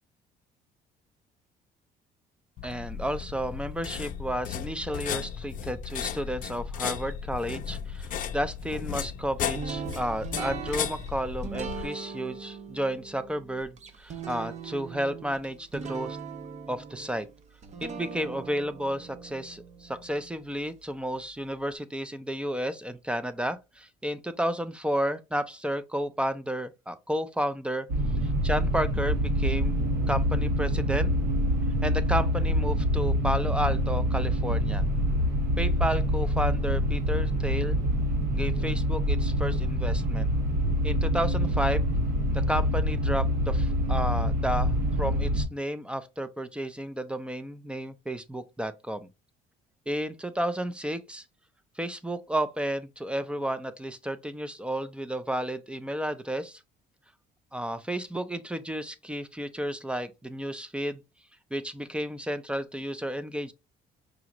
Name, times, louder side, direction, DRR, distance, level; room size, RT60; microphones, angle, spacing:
sound 1, 2.6-11.9, left 8 dB, 55° left, 0.5 m, -35 dB
voice 1, 2.6-16.2 16.7-17.3 17.8-27.9 28.4-29.8 30.1-31.1 31.8-34.8 35.6-37.8 38.3-40.3 40.8-41.9 42.3-49.1 49.9-51.2 51.8-56.6 57.5-61.0 61.5-63.5, equal, 5° right, 0.4 m, -32 dB
sound 2, 9.5-20.6, right 6 dB, 45° right, 0.7 m, -40 dB
sound 3, 27.9-45.5, equal, 80° right, 1.2 m, -26 dB
5.0 x 2.4 x 3.0 m
cardioid pair, 110°, 17 cm